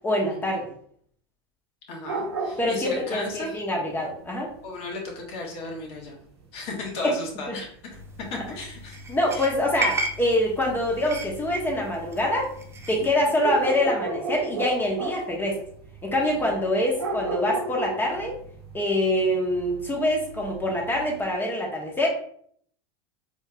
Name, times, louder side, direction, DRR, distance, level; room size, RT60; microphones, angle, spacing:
voice 1, 0.0-0.7 2.6-4.5 7.0-7.1 7.5-7.6 9.1-12.5 12.9-15.6 16.0-18.3 18.7-22.1, left 1 dB, 15° left, -1 dB, 1.3 m, -25 dB
voice 2, 1.9-3.6 4.6-6.2 6.5-8.0 8.5-9.0 9.3-9.5 12.9-13.2 16.2-16.5, left 2 dB, 50° left, 0 dB, 1.4 m, -35 dB
sound 1, 2.0-9.2 9.4-21.2, right 3 dB, 90° right, 1.0 m, -35 dB
sound 2, 7.9-13.1, right 1 dB, 20° right, 0.6 m, -35 dB
4.4 x 3.1 x 2.3 m, 0.62 s
hypercardioid pair, 95°, 13 cm